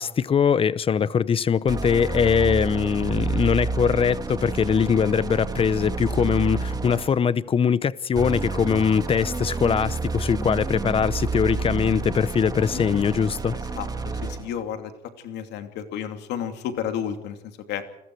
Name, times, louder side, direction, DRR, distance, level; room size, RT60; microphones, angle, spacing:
voice 1, 0.0-13.6, left 7 dB, 35° left, 0.8 m, -22 dB
sound 1, 1.7-7.3 8.1-14.6, right 4 dB, 20° right, 2.0 m, -29 dB
voice 2, 12.7-13.1 13.7-14.9 15.2-17.4 17.7-17.8, left 9 dB, 85° left, 2.8 m, -32 dB
29.0 x 21.0 x 4.7 m
cardioid pair, 110°, 17 cm